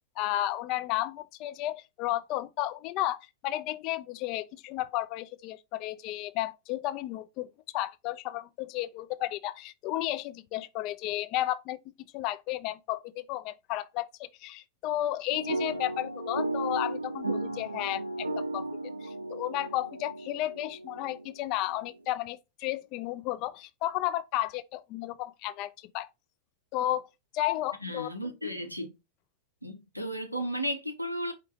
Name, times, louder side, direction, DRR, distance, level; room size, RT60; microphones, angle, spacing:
voice 1, 0.2-3.2 3.4-7.5 7.7-11.8 12.1-18.7 19.0-26.1 26.7-27.1 27.3-28.1, left 15 dB, 40° left, 0.3 m, -33 dB
sound 1, 15.3-21.5, right 2 dB, 80° right, 0.5 m, -35 dB
voice 2, 27.8-28.9 29.6-31.3, equal, 90° left, 0.8 m, -34 dB
4.8 x 2.7 x 3.7 m
figure-of-eight pair, 90°, 0 cm